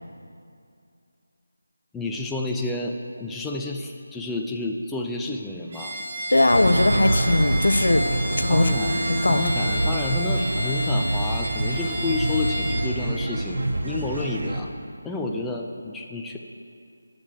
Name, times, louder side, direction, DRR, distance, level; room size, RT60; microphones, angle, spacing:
voice 1, 1.9-5.9 8.5-9.0 9.3-14.7 15.0-16.4, left 2 dB, 5° left, 0 dB, 0.5 m, -30 dB
Bowed string instrument, 5.7-12.9, equal, 35° right, 2.7 m, -32 dB
voice 2, 6.3-8.7 9.1-9.5, left 2 dB, 75° left, 8 dB, 0.8 m, -20 dB
sound 1, 6.5-14.6, right 1 dB, 65° right, 1.3 m, -26 dB
12.0 x 6.6 x 7.5 m, 2.4 s
figure-of-eight pair, 165°, 0 cm